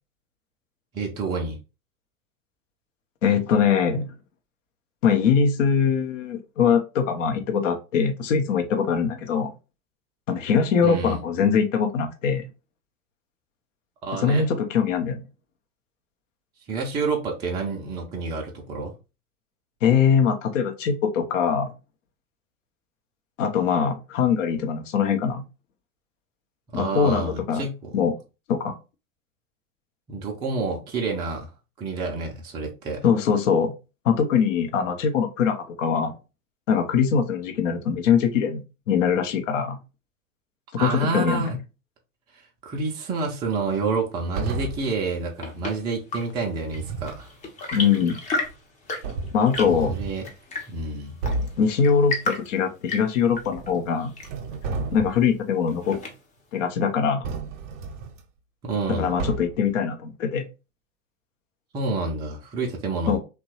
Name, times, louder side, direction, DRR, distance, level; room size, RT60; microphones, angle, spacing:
voice 1, 0.9-1.6 10.8-11.2 14.0-14.5 16.7-18.9 26.7-28.0 30.1-31.5 31.8-33.0 40.8-41.6 42.6-47.3 49.9-50.2 50.7-51.2 58.6-59.1 61.7-63.2, right 3 dB, 10° right, 0.3 m, -28 dB
voice 2, 3.2-4.1 5.0-9.5 10.3-12.4 14.2-15.2 19.8-21.7 23.4-25.4 26.7-27.7 27.9-28.1 28.5-28.8 33.0-33.7 34.0-36.1 36.7-39.8 40.7-41.4 47.7-48.2 49.3-49.9 51.6-54.1 54.9-56.0 56.5-57.3 59.0-60.4 63.1-63.2, left 6 dB, 60° left, 0.7 m, -22 dB
sound 1, 44.3-45.0 46.6-47.2 48.5-48.6 49.0-50.2 50.8-50.9 51.2-51.7 53.3-53.9 54.2-55.3 57.2-58.2 59.2-59.7, right 3 dB, 60° right, 0.6 m, -32 dB
Chirp tweet / Engine / Tap, 45.0-56.5, left 2 dB, 20° left, 0.6 m, -35 dB
2.9 x 2.2 x 2.8 m
figure-of-eight pair, 90°, 43 cm